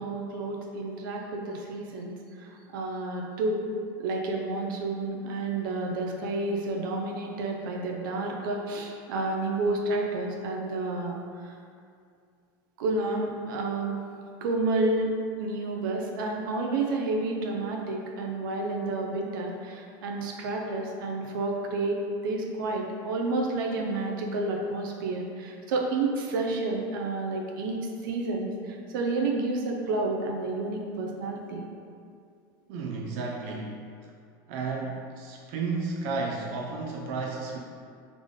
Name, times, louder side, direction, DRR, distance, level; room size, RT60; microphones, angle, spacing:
voice 1, 0.0-3.7 4.0-11.5 12.8-14.0 14.4-31.7, right 2 dB, 85° right, 1 dB, 0.7 m, -30 dB
voice 2, 32.7-34.1 34.5-37.6, right 4 dB, 55° right, -1 dB, 0.4 m, -33 dB
3.6 x 3.6 x 3.6 m, 2.4 s
supercardioid pair, 170°, 11 cm